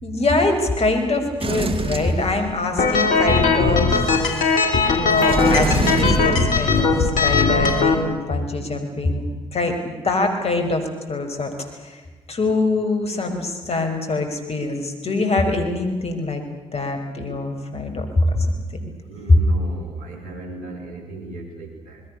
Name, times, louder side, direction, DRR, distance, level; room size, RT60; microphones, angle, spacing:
voice 1, 0.0-3.9 4.9-9.2 9.5-11.5 11.8-12.0 12.3-16.4 16.7-18.5 18.7-18.9 19.3-19.4, left 2 dB, 50° left, 5 dB, 6.1 m, -23 dB
Sliding door, 1.4-2.9 5.1-7.1, right 4 dB, 40° right, 2.8 m, -26 dB
sound 1, 2.8-7.9, left 4 dB, 70° left, 3.2 m, -18 dB
voice 2, 19.1-22.0, right 2 dB, 75° right, 5 dB, 5.3 m, -36 dB
28.5 x 21.5 x 7.0 m, 1.3 s
hypercardioid pair, 45°, 14 cm